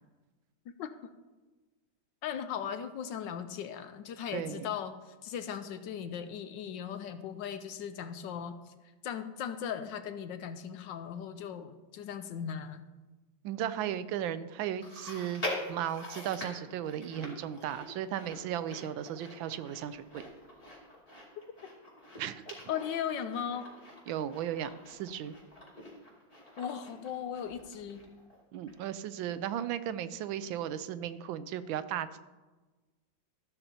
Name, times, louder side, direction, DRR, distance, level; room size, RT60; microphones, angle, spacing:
voice 1, 0.8-1.1 2.2-8.6 9.0-12.8 22.7-23.7 26.6-28.0, left 8 dB, 75° left, 9 dB, 1.3 m, -38 dB
voice 2, 4.3-4.7 13.4-15.4 15.7-20.2 22.2-22.4 24.1-25.3 28.5-32.2, right 10 dB, 90° right, 13 dB, 1.4 m, -36 dB
Chewing mastication, 14.8-28.4 28.7-28.8 29.6-29.7, left 1 dB, 20° left, 2.6 m, -44 dB
14.0 x 12.0 x 2.9 m, 1.2 s
omnidirectional pair, 2.1 m